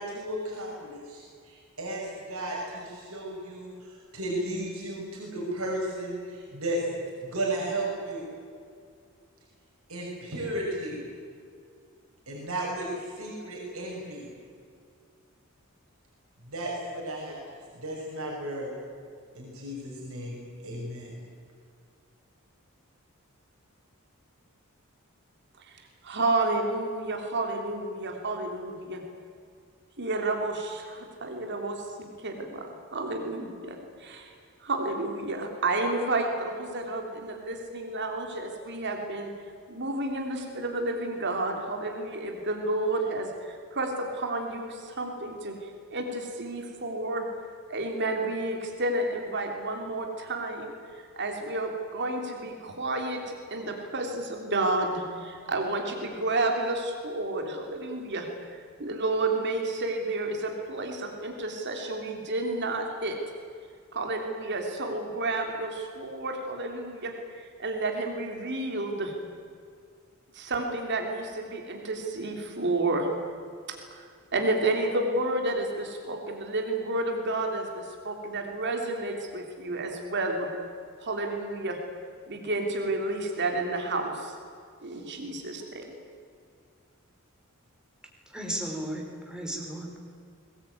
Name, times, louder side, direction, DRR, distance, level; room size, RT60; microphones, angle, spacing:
voice 1, 0.0-2.0 2.3-8.2 9.9-11.0 12.3-14.3 16.5-17.3 17.7-18.7 19.3-21.1, right 1 dB, 75° right, -3 dB, 6.2 m, -34 dB
voice 2, 26.0-29.0 30.0-34.3 34.6-39.3 39.7-47.3 47.7-63.2 63.9-69.1 70.3-73.1 73.7-80.5 81.0-81.8 82.3-84.3 84.8-85.9, right 2 dB, 55° right, 3 dB, 3.1 m, -31 dB
voice 3, 88.3-90.0, right 1 dB, 5° right, 0 dB, 3.9 m, -35 dB
22.0 x 20.0 x 9.4 m, 2.2 s
head